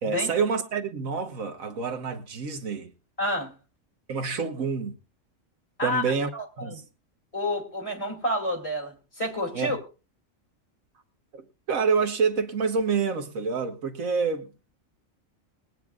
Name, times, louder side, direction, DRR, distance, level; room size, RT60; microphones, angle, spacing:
voice 1, 0.0-2.9 4.1-4.9 5.8-6.3 6.6-6.8 9.5-9.7 11.3-14.5, right 5 dB, 85° right, 1.6 m, -27 dB
voice 2, 3.2-3.5 5.8-6.0 6.3-6.8 7.3-9.8, left 1 dB, 25° left, 2.8 m, -29 dB
22.0 x 9.2 x 2.4 m
omnidirectional pair, 1.4 m